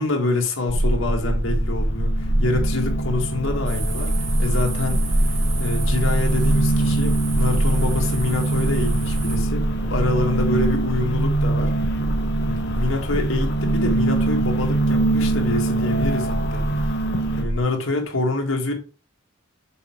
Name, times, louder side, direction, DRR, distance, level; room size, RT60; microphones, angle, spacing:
voice 1, 0.0-11.7 12.5-16.9 17.4-18.7, left 2 dB, 80° left, 1.9 m, -26 dB
sound 1, 0.7-17.6, right 1 dB, 10° left, 1.4 m, -25 dB
sound 2, 1.1-17.4, right 2 dB, 55° left, 1.1 m, -25 dB
sound 3, 3.7-9.4, right 4 dB, 65° right, 2.9 m, -34 dB
6.9 x 4.7 x 4.5 m
head